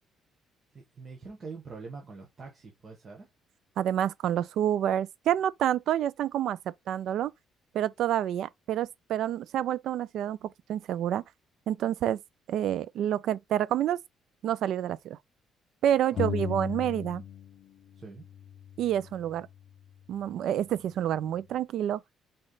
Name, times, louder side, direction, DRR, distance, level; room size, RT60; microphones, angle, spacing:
voice 1, 0.7-3.3 16.1-16.6 18.0-18.3, right 4 dB, 30° right, 1.2 m, -45 dB
voice 2, 3.8-6.6 6.9-7.3 7.7-11.2 11.7-12.2 12.5-14.0 14.4-15.2 15.8-17.2 18.8-19.5 20.1-22.0, right 11 dB, 65° right, 0.4 m, -28 dB
sound 1, 16.2-17.7 17.9-19.7, left 9 dB, 60° left, 0.5 m, -37 dB
4.1 x 3.3 x 3.8 m
cardioid pair, 155°, 0 cm